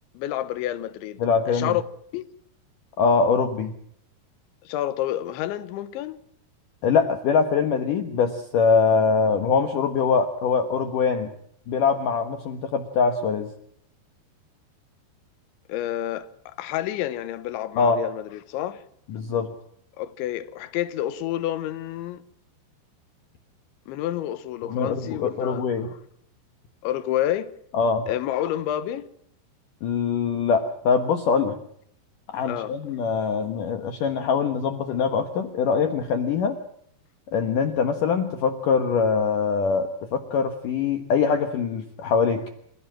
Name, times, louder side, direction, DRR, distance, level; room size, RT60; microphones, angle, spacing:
voice 1, 0.2-1.2 1.5-1.8 2.1-2.3 4.7-6.2 15.7-18.8 20.0-22.2 23.9-26.0 26.8-27.5 28.1-29.1 32.5-32.8, left 12 dB, 80° left, 3.5 m, -29 dB
voice 2, 1.2-1.8 3.0-3.7 6.8-11.3 11.7-13.5 17.8-18.0 19.1-19.5 24.6-25.9 27.7-28.1 29.8-31.6 32.3-36.6 37.3-42.4, left 5 dB, 65° left, 2.3 m, -23 dB
29.0 x 16.0 x 7.5 m
omnidirectional pair, 5.3 m